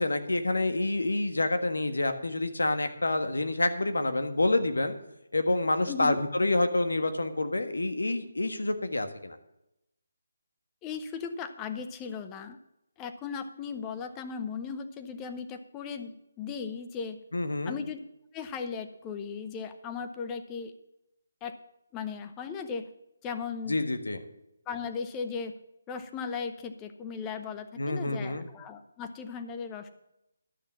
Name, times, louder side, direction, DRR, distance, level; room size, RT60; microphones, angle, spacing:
voice 1, 0.0-4.9 5.3-9.4 17.3-17.8 23.7-24.2 27.8-28.5, left 2 dB, 85° left, 8 dB, 1.5 m, -28 dB
voice 2, 5.9-6.2 10.8-12.6 13.0-17.2 17.6-18.0 18.3-20.7 21.4-21.6 21.9-22.9 23.2-23.8 24.7-25.6 25.9-29.9, left 6 dB, 15° left, 9 dB, 0.8 m, -37 dB
12.0 x 6.3 x 7.1 m, 0.86 s
figure-of-eight pair, 155°, 0 cm